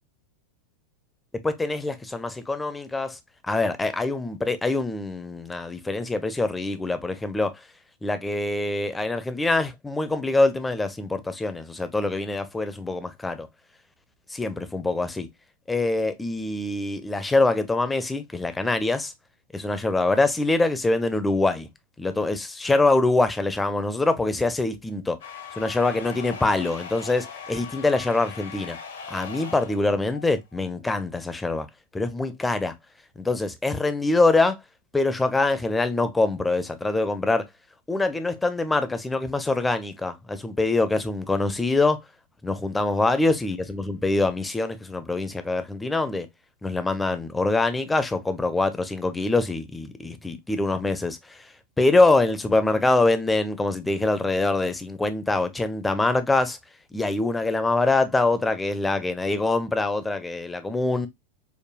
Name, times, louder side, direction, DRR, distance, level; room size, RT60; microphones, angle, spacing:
voice 1, 1.4-3.2 3.4-7.5 8.0-13.5 14.3-15.3 15.7-19.1 19.5-21.7 22.0-25.2 25.6-28.8 29.1-31.7 31.9-32.7 33.2-34.6 34.9-37.4 37.9-42.0 42.4-46.3 46.6-51.4 51.8-56.6 56.9-61.1, left 2 dB, 10° left, 0.5 m, -24 dB
sound 1, 25.2-30.7, left 6 dB, 65° left, 0.7 m, -40 dB
4.9 x 2.2 x 2.2 m
figure-of-eight pair, 90°, 0 cm